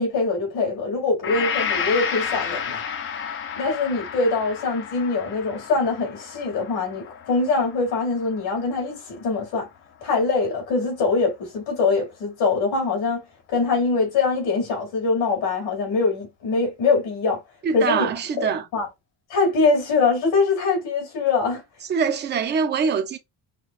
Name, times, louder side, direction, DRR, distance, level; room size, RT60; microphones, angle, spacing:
voice 1, 0.0-2.8 3.5-9.7 10.0-13.2 13.5-17.4 17.7-18.1 18.4-18.5 18.7-18.9 19.3-21.6, left 4 dB, 65° left, 2.6 m, -23 dB
Gong, 1.2-9.3, left 7 dB, 30° left, 0.4 m, -31 dB
voice 2, 17.6-18.7 21.9-23.2, right 6 dB, 25° right, 0.5 m, -23 dB
5.7 x 2.1 x 2.4 m
cardioid pair, 170°, 43 cm